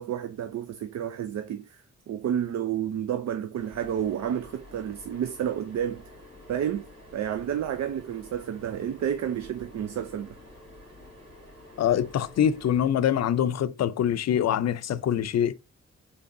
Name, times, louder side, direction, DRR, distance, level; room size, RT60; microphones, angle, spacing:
voice 1, 0.0-6.0 6.5-10.4, right 9 dB, 65° right, 0.5 m, -30 dB
sound 1, 3.6-12.9, left 1 dB, 80° right, 2.4 m, -49 dB
voice 2, 11.8-15.5, left 9 dB, 60° left, 0.5 m, -24 dB
3.9 x 3.3 x 2.6 m
cardioid pair, 60°, 30 cm